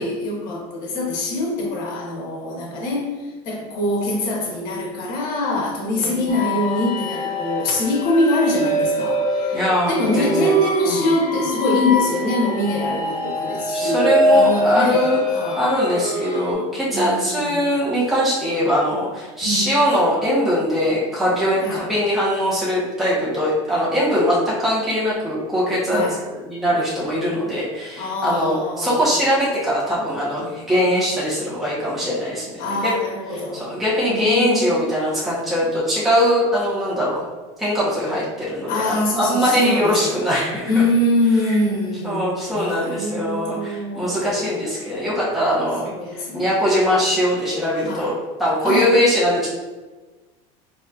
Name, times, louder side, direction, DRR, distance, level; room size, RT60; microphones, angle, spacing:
voice 1, 0.0-9.6 9.9-15.6 16.9-17.6 19.4-19.8 21.6-21.8 25.9-26.2 28.0-29.0 32.6-33.6 34.1-34.8 38.7-40.2 40.6-42.3 42.5-44.4 45.8-46.5 47.8-48.1 48.6-48.9, left 1 dB, 60° left, -1 dB, 1.3 m, -24 dB
sound 1, 6.3-16.5, left 1 dB, 25° left, 1.5 m, -23 dB
voice 2, 9.5-10.5 10.8-11.0 13.7-15.2 15.5-32.9 33.6-37.2 37.6-40.8 41.4-41.6 42.0-48.1 48.4-49.5, equal, ahead, -10 dB, 1.2 m, -21 dB
4.1 x 2.9 x 2.6 m, 1.3 s
supercardioid pair, 130°, 17 cm